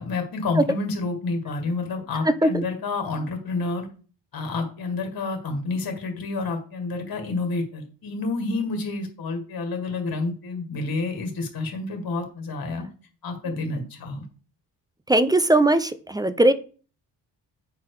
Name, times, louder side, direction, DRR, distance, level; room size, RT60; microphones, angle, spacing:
voice 1, 0.0-3.9 4.3-12.9 13.2-14.2, left 3 dB, 55° left, 4 dB, 2.0 m, -29 dB
voice 2, 15.1-16.5, right 1 dB, 10° right, 13 dB, 0.5 m, -19 dB
5.9 x 4.3 x 4.9 m, 0.39 s
cardioid pair, 95°, 43 cm